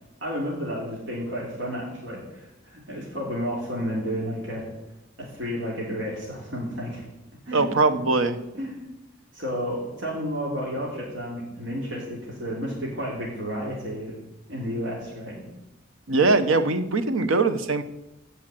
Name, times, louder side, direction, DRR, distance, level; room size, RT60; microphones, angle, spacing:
voice 1, 0.2-4.7 5.2-7.0 7.4-7.7 8.5-8.8 9.3-14.1 14.5-15.4, equal, 65° right, -4 dB, 3.2 m, -31 dB
voice 2, 7.5-8.4 16.1-17.8, right 3 dB, 80° right, 10 dB, 1.0 m, -21 dB
16.5 x 5.6 x 7.7 m, 0.92 s
head